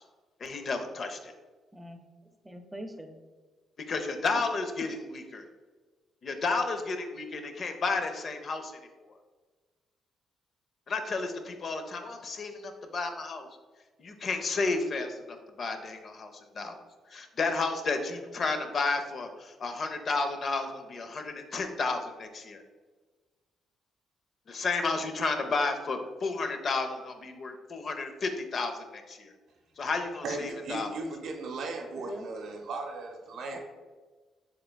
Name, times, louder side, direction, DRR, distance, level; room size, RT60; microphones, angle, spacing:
voice 1, 0.4-1.3 3.9-5.4 6.2-8.8 10.9-13.5 14.0-16.7 17.1-22.6 24.5-29.3 29.8-30.9, left 3 dB, 50° left, 6 dB, 0.6 m, -32 dB
voice 2, 1.7-3.2 4.3-4.4 4.8-4.9 32.0-32.3 33.5-33.6, right 1 dB, 10° right, 5 dB, 0.6 m, -43 dB
voice 3, 30.2-33.6, right 3 dB, 70° right, 3 dB, 0.8 m, -37 dB
6.7 x 3.4 x 2.3 m, 1.3 s
cardioid pair, 90°, 0 cm